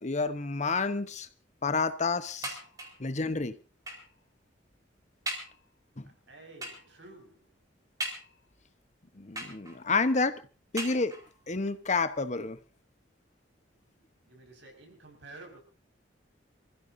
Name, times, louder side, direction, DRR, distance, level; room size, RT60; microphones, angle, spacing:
voice 1, 0.0-1.3 1.6-2.6 3.0-3.5 6.0-6.1 9.2-10.4 10.7-11.1 11.5-12.6, left 3 dB, 40° left, 1.0 m, -29 dB
sound 1, 2.4-3.1 3.9-4.2 4.7-4.8 5.3-5.6 6.6-6.9 8.0-8.6 9.4-10.0 10.8-11.4 12.3-12.4 12.7-12.8, right 1 dB, 20° right, 4.4 m, -39 dB
voice 2, 6.3-7.5 14.2-15.6, right 2 dB, 70° right, 5.7 m, -51 dB
26.5 x 15.0 x 2.7 m
head